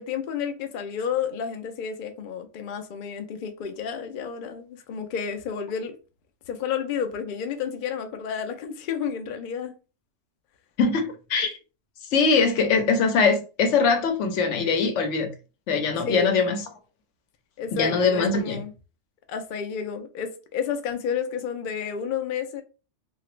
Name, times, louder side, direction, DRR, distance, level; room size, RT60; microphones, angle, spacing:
voice 1, 0.0-6.0 6.5-9.7 16.0-16.4 17.6-18.7 19.3-22.6, left 7 dB, 60° left, 0.6 m, -31 dB
voice 2, 10.8-11.6 12.1-15.3 15.7-16.6 17.7-18.6, left 4 dB, 85° left, 1.0 m, -22 dB
2.9 x 2.5 x 3.1 m
omnidirectional pair, 1.2 m